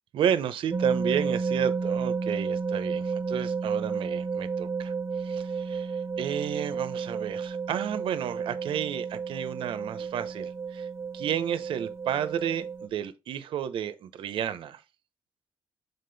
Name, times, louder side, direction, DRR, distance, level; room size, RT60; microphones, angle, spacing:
voice 1, 0.1-10.9 11.1-14.8, right 9 dB, 80° right, 0.8 m, -32 dB
sound 1, 0.7-12.9, right 5 dB, 30° right, 0.6 m, -32 dB
6.8 x 4.1 x 4.0 m
cardioid pair, 90°, 9 cm